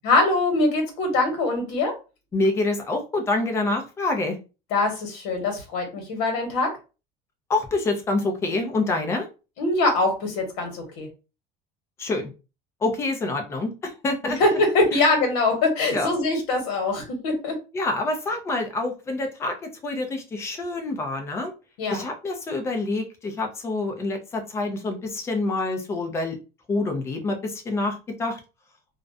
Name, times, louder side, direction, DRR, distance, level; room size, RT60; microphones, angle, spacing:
voice 1, 0.0-1.9 4.7-6.7 9.6-11.1 14.2-17.6 21.8-22.1, left 2 dB, 75° left, 3 dB, 1.1 m, -23 dB
voice 2, 2.3-4.4 7.5-9.3 12.0-12.3 12.8-14.4 15.9-16.1 17.7-21.5 21.9-26.4 26.7-28.4, left 2 dB, 15° left, 4 dB, 0.4 m, -26 dB
2.4 x 2.1 x 2.5 m, 0.31 s
cardioid pair, 170°, 17 cm